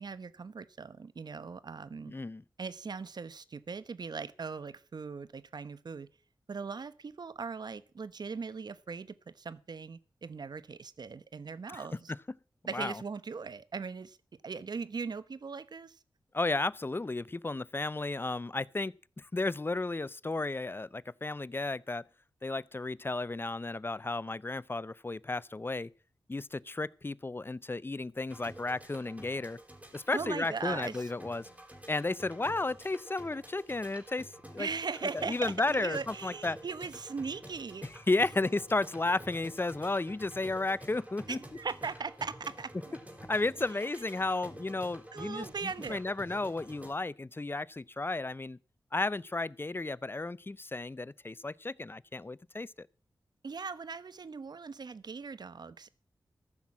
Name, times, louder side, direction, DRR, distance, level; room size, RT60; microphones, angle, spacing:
voice 1, 0.0-2.1 2.6-6.1 6.5-12.1 12.6-14.2 14.4-16.0 30.1-31.1 34.6-37.9 41.3-42.9 43.7-43.9 44.3-44.5 45.1-46.0 53.4-55.9, right 5 dB, 60° right, 1.0 m, -39 dB
voice 2, 2.1-2.4 11.7-11.8 12.7-13.0 16.3-22.0 22.4-25.9 26.3-29.6 29.9-31.5 31.9-34.7 35.1-36.6 38.1-41.4 43.3-48.6 48.9-52.9, left 2 dB, 30° left, 0.6 m, -33 dB
sound 1, 28.3-46.9, right 1 dB, 15° right, 4.2 m, -50 dB
14.5 x 6.1 x 8.5 m
cardioid pair, 40°, 8 cm